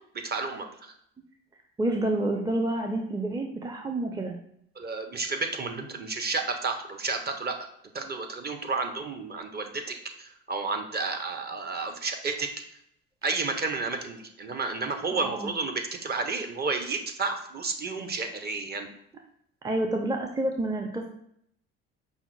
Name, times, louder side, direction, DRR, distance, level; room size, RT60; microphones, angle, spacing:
voice 1, 0.1-0.9 4.8-7.6 7.9-12.5 13.2-18.9, right 4 dB, 30° right, 5 dB, 0.9 m, -31 dB
voice 2, 1.8-4.3 15.1-15.5 19.6-21.1, right 1 dB, 15° right, 2 dB, 0.6 m, -28 dB
5.4 x 2.1 x 4.7 m, 0.72 s
hypercardioid pair, 65°, 30 cm